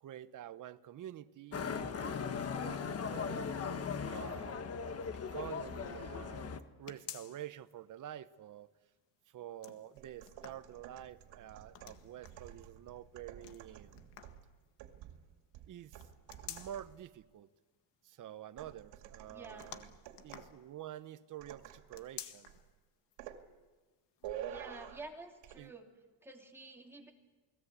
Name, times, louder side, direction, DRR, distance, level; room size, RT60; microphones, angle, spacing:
voice 1, 0.0-4.6 5.3-8.7 9.3-14.0 15.7-16.0 16.4-17.5 18.0-19.9 20.2-22.5 25.6-25.8, right 11 dB, 45° right, 1.0 m, -48 dB
Motorcycle, 1.5-6.6, left 6 dB, 35° left, 1.3 m, -38 dB
Stove knob ignition light, 6.9-7.7 8.1-8.2 9.4-11.1 11.7-12.5 13.4-14.5 15.9-17.0 19.6-21.0 21.9-22.7 23.1-23.2 24.2-24.3, left 11 dB, 70° left, 1.9 m, -51 dB
sound 1, 10.0-17.1 18.6-20.6 21.4-22.1 22.5-22.7 23.2-23.5 24.2-25.1 25.4-25.6, right 10 dB, 90° right, 2.5 m, -50 dB
voice 2, 19.3-19.7 24.5-25.9 26.2-27.1, right 2 dB, 5° right, 3.3 m, -50 dB
29.0 x 20.5 x 8.4 m
cardioid pair, 155°, 44 cm